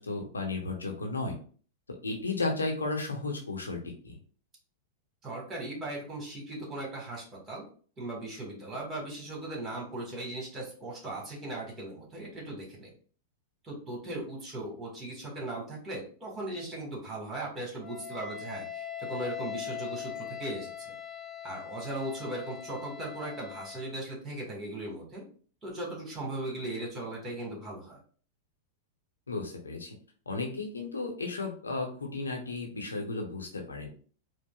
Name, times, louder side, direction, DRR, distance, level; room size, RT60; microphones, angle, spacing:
voice 1, 0.0-1.4 2.0-4.1 29.3-29.9 30.3-33.9, left 3 dB, 80° left, 2 dB, 0.8 m, -34 dB
voice 2, 5.2-7.6 8.0-12.9 13.6-20.9 21.4-25.2 25.6-28.0, right 1 dB, 25° right, -1 dB, 1.6 m, -38 dB
Wind instrument woodwind instrument, 17.8-24.0, left 9 dB, 15° left, 0.6 m, -41 dB
4.8 x 2.0 x 2.4 m, 0.43 s
figure-of-eight pair, 95°, 0 cm